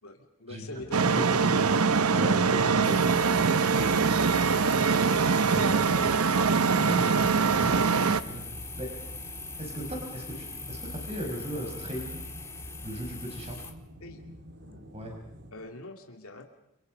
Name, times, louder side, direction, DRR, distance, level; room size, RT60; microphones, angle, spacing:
voice 1, 0.0-1.2 14.0-14.2 15.5-16.4, left 2 dB, 75° left, 3 dB, 2.5 m, -43 dB
sound 1, 0.8-15.5, equal, 50° right, 2.6 m, -48 dB
voice 2, 0.9-1.6 2.1-3.1 5.5-6.2 6.7-8.5 8.8-8.9 9.6-12.1 12.8-13.6 14.9-15.1, equal, 30° right, 1 dB, 5.5 m, -36 dB
sound 2, 0.9-8.2, right 5 dB, 80° right, 0.9 m, -23 dB
sound 3, 2.8-13.7, left 3 dB, 10° left, 1.7 m, -41 dB
29.5 x 26.0 x 5.4 m, 0.82 s
head